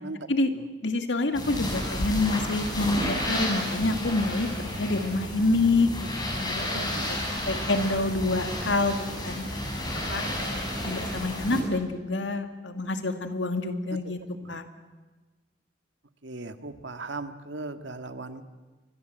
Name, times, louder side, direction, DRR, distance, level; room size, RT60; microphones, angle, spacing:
voice 1, 0.8-6.1 6.3-9.0 9.2-9.5 10.1-14.2 14.5-14.7, left 2 dB, 90° left, 7 dB, 2.3 m, -27 dB
sound 1, 1.3-11.6, left 1 dB, 25° left, 6.6 m, -31 dB
voice 2, 6.7-7.8 10.1-10.5 14.4-14.6 16.2-18.4, right 3 dB, 90° right, 8 dB, 1.8 m, -39 dB
29.5 x 24.0 x 7.8 m, 1.2 s
head